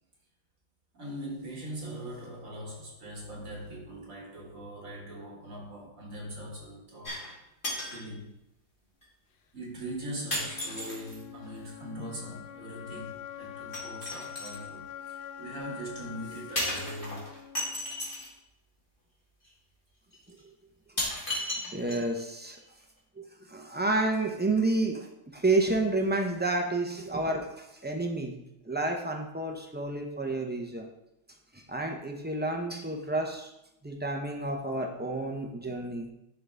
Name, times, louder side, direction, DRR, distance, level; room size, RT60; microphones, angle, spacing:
voice 1, 0.9-7.4 7.8-8.4 9.5-17.4, right 1 dB, 85° right, -2 dB, 2.3 m, -41 dB
sound 1, 7.0-7.4 7.6-8.0 9.0-9.1 10.3-11.2 13.7-14.6 16.6-18.3 19.4-19.5 20.1-20.2 21.0-22.2 22.6-22.7, left 1 dB, 40° left, 2.2 m, -34 dB
sound 2, 10.2-18.2, left 9 dB, 60° left, 0.6 m, -45 dB
voice 2, 21.7-22.6 23.2-25.1 25.3-28.4 28.7-30.9 31.5-33.5 33.8-36.1, right 2 dB, 10° right, 2 dB, 0.6 m, -30 dB
11.5 x 3.9 x 3.5 m, 0.84 s
omnidirectional pair, 1.3 m